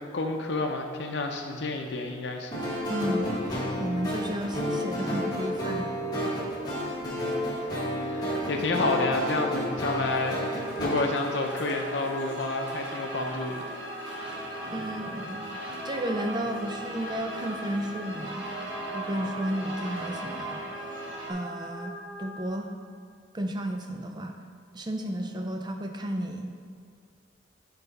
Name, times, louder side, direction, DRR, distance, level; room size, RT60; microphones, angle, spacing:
voice 1, 0.1-2.6 7.0-7.4 8.0-13.7, left 2 dB, 70° left, 3 dB, 0.7 m, -30 dB
sound 1, 2.5-10.9, equal, 20° left, 1.3 m, -31 dB
voice 2, 2.9-5.9 14.7-18.5 18.9-21.0 21.3-22.7 23.3-24.4 24.7-26.5, right 1 dB, 25° right, 4 dB, 0.5 m, -33 dB
sound 2, 9.8-21.3, right 1 dB, 85° right, 1.1 m, -39 dB
sound 3, 10.6-22.5, equal, 40° left, 1.2 m, -42 dB
7.8 x 4.0 x 4.1 m, 2.2 s
head